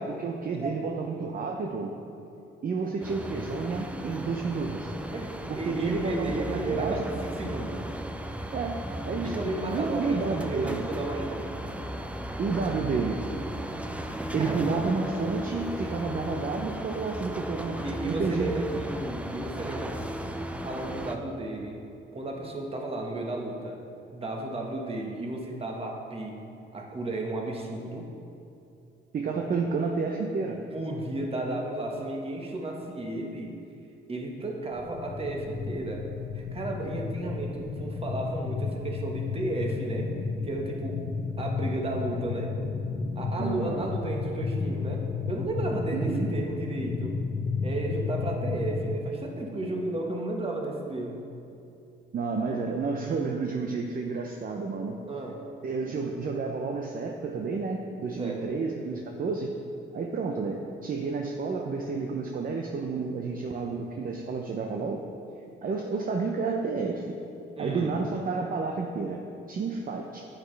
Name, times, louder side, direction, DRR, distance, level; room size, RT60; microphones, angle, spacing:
voice 1, 0.0-1.9 2.6-4.9 5.5-7.2 8.5-8.8 9.0-9.3 9.7-10.8 12.4-13.2 14.3-18.8 29.1-30.6 43.4-43.8 45.9-46.3 52.1-55.0 55.6-59.5 59.9-65.0 65.6-67.0 67.6-69.2 69.5-70.2, right 4 dB, 45° right, 2 dB, 0.7 m, -30 dB
voice 2, 0.5-1.0 5.1-7.7 9.2-11.4 14.2-14.7 17.8-20.1 20.6-21.8 22.1-23.8 24.1-26.4 26.7-28.1 30.7-33.5 34.1-36.1 36.3-40.1 40.4-41.1 41.4-42.5 43.1-45.0 45.3-47.2 47.6-51.2 55.1-55.4 58.2-58.4 67.5-68.0, right 2 dB, 30° right, 0 dB, 1.4 m, -33 dB
sound 1, 3.0-21.2, right 1 dB, 5° right, 0.5 m, -36 dB
sound 2, 34.8-49.0, left 4 dB, 45° left, 0.7 m, -32 dB
9.9 x 8.2 x 3.3 m, 2.7 s
cardioid pair, 90°, 20 cm